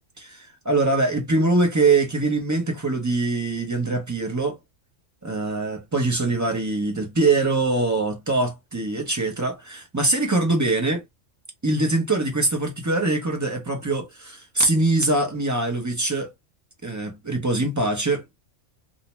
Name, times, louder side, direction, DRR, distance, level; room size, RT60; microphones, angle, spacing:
voice 1, 0.0-4.6 5.2-11.0 11.6-16.3 16.8-18.2, right 2 dB, 25° right, 0.4 m, -23 dB
2.6 x 2.1 x 2.9 m
omnidirectional pair, 1.3 m